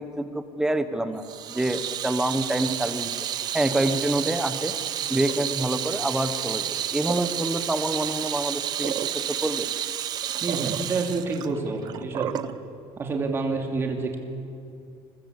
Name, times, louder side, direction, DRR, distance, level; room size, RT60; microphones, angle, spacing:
voice 1, 0.0-3.1 3.5-4.7 5.1-9.7, right 1 dB, 5° right, 9 dB, 1.2 m, -27 dB
Water tap faucet / Sink (filling or washing), 1.2-12.5, right 10 dB, 40° right, 0.8 m, -30 dB
voice 2, 10.4-12.3 13.0-14.2, right 3 dB, 20° right, 2 dB, 2.7 m, -28 dB
29.5 x 21.5 x 8.5 m, 2.5 s
cardioid pair, 175°, 11 cm